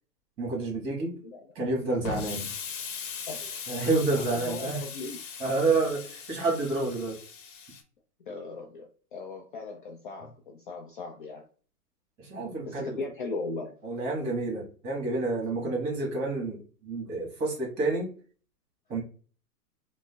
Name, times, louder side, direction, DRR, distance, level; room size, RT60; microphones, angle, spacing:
voice 1, 0.4-1.1 1.5-2.5 3.7-4.8 5.4-7.2 12.2-13.0 13.8-18.1 18.9-19.0, right 3 dB, 30° right, -1 dB, 1.5 m, -29 dB
Explosion, 2.0-7.8, left 6 dB, 55° left, 0.9 m, -39 dB
voice 2, 3.3-3.6 4.1-5.2 8.3-11.4 12.6-13.7 15.6-15.8, left 3 dB, 35° left, 1 dB, 0.4 m, -38 dB
4.9 x 2.0 x 2.3 m, 0.41 s
hypercardioid pair, 125°, 48 cm